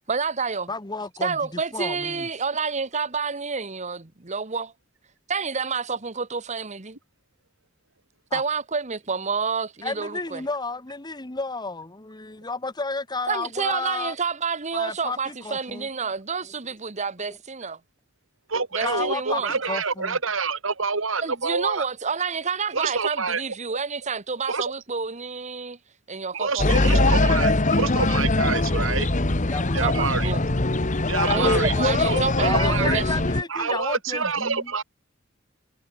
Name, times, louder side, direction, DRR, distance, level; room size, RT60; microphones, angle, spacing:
voice 1, 0.1-0.7 1.2-4.7 5.3-7.0 8.3-10.4 13.3-17.8 18.7-19.5 21.1-25.8 26.1-27.0 29.8-30.4 31.3-33.3, right 5 dB, 35° right, 1.4 m, -29 dB
voice 2, 0.7-2.3 8.3-8.4 9.8-14.1 14.7-15.9 18.8-20.2 29.5-30.1 31.2-31.5 32.4-34.7, left 3 dB, 20° left, 1.3 m, -32 dB
voice 3, 18.5-21.9 22.7-23.4 24.4-24.7 26.3-29.1 29.7-30.3 31.1-31.7 32.0-33.0 33.5-34.8, right 4 dB, 75° right, 2.3 m, -27 dB
sound 1, 26.6-33.4, left 2 dB, 40° left, 1.5 m, -22 dB
head